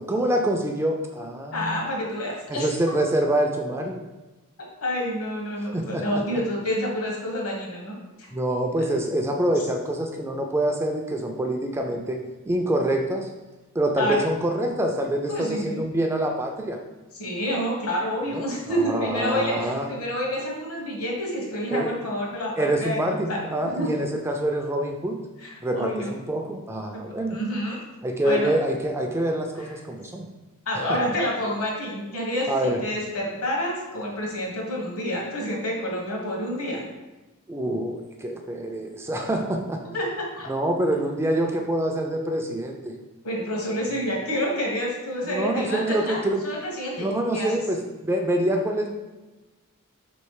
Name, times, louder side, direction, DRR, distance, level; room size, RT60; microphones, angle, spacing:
voice 1, 0.0-1.8 2.5-4.0 5.7-6.2 8.3-12.2 12.5-13.3 13.8-16.8 18.3-18.5 18.8-19.9 21.7-21.9 22.6-25.2 25.6-27.4 28.0-30.3 30.9-31.0 32.5-32.8 37.5-39.8 40.5-42.9 45.2-46.4 47.0-48.9, right 1 dB, 10° right, 2 dB, 0.3 m, -26 dB
voice 2, 1.5-2.7 4.8-8.3 14.0-14.2 15.3-15.8 17.2-24.0 25.4-26.1 26.9-27.8 28.2-28.5 30.7-36.8 39.9-40.5 43.2-47.5, equal, 70° left, -2 dB, 1.3 m, -28 dB
3.5 x 3.1 x 4.7 m, 1.1 s
head